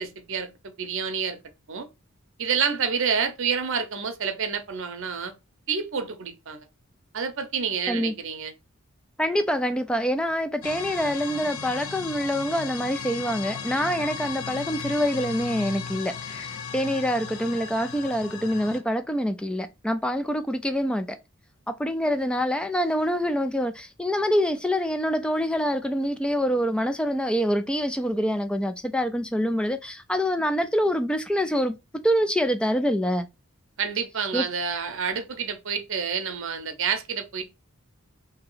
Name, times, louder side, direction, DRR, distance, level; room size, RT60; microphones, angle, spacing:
voice 1, 0.0-1.4 1.7-1.9 2.4-5.3 5.7-6.7 7.1-8.5 33.8-37.4, right 6 dB, 65° right, 0.7 m, -28 dB
voice 2, 9.2-21.2 21.7-31.8 32.0-33.3 34.3-34.4, equal, 5° left, 0.3 m, -26 dB
sound 1, 10.6-18.8, left 6 dB, 70° left, 0.6 m, -36 dB
2.9 x 2.8 x 3.8 m
head